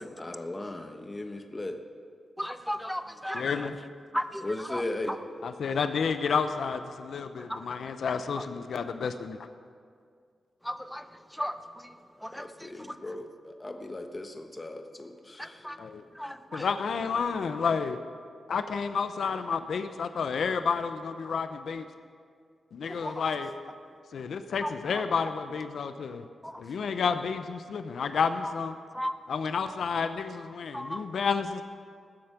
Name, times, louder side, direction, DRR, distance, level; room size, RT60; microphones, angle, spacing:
voice 1, 0.0-1.8 4.4-5.2 12.3-15.7, left 2 dB, 25° left, 5 dB, 1.2 m, -37 dB
voice 2, 2.4-3.4 4.1-4.8 7.5-7.6 10.6-11.0 11.4-11.5 12.2-12.5 15.4-15.8 16.2-16.6 23.0-23.2 26.4-26.5 28.9-29.2 30.7-31.0, equal, ahead, 10 dB, 0.7 m, -34 dB
voice 3, 3.3-3.8 5.4-9.4 15.8-16.0 16.5-18.0 18.5-21.9 22.7-23.5 24.1-26.3 26.6-28.8 29.3-31.6, left 5 dB, 75° left, 9 dB, 0.7 m, -30 dB
19.5 x 7.8 x 5.9 m, 2.1 s
cardioid pair, 90°, 0 cm